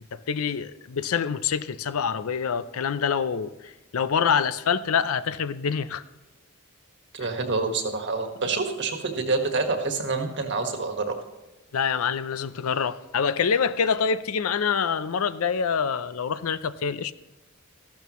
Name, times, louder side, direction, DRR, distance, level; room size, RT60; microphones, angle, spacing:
voice 1, 0.1-6.0 11.7-17.1, left 6 dB, 80° left, 0.5 m, -26 dB
voice 2, 7.1-11.2, right 3 dB, 55° right, 1.6 m, -27 dB
14.0 x 12.5 x 3.1 m
head